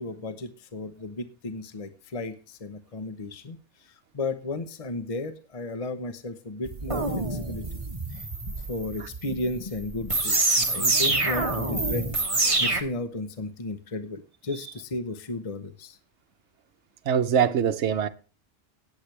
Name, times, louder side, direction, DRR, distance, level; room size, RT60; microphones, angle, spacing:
voice 1, 0.0-7.8 8.1-8.3 8.6-16.0, left 2 dB, 30° left, 1.0 m, -34 dB
sound 1, 6.6-12.8, right 2 dB, 25° right, 1.5 m, -26 dB
voice 2, 17.1-18.1, right 8 dB, 75° right, 1.1 m, -23 dB
17.0 x 8.5 x 3.3 m
omnidirectional pair, 1.2 m